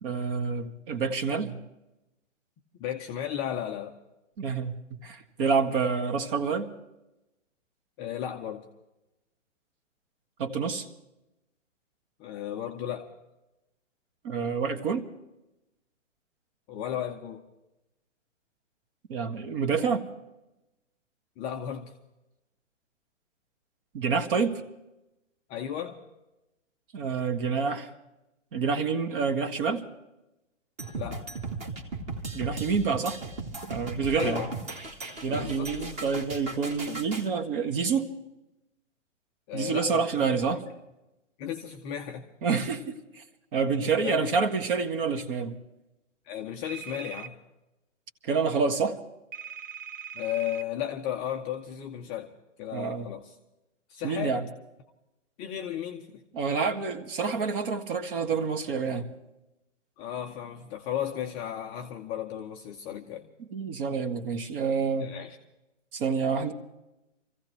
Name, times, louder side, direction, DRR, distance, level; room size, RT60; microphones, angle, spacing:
voice 1, 0.0-1.6 4.4-6.7 10.4-10.9 14.2-15.0 19.1-20.0 23.9-24.6 26.9-27.9 28.5-29.8 32.3-33.2 33.6-34.4 35.2-38.1 39.5-40.6 42.4-43.2 43.5-45.6 48.2-49.0 52.7-53.1 54.0-54.4 56.3-59.1 63.5-65.1 65.9-66.5, right 5 dB, 45° right, 8 dB, 1.7 m, -28 dB
voice 2, 2.8-4.0 8.0-8.6 12.2-13.1 16.7-17.4 21.4-21.9 25.5-26.0 30.9-31.2 34.1-34.6 35.3-36.0 39.5-40.4 41.4-42.3 43.8-44.3 46.3-47.4 50.1-52.3 52.6-53.4 53.9-54.4 55.4-56.2 60.0-63.3 65.0-65.4, left 10 dB, 15° left, 2 dB, 0.5 m, -35 dB
sound 1, 30.8-37.3, right 3 dB, 20° right, 1.4 m, -37 dB
sound 2, 46.6-47.3 49.3-50.7, right 8 dB, 85° right, 1.1 m, -41 dB
25.5 x 15.5 x 3.2 m, 0.96 s
hypercardioid pair, 135°, 38 cm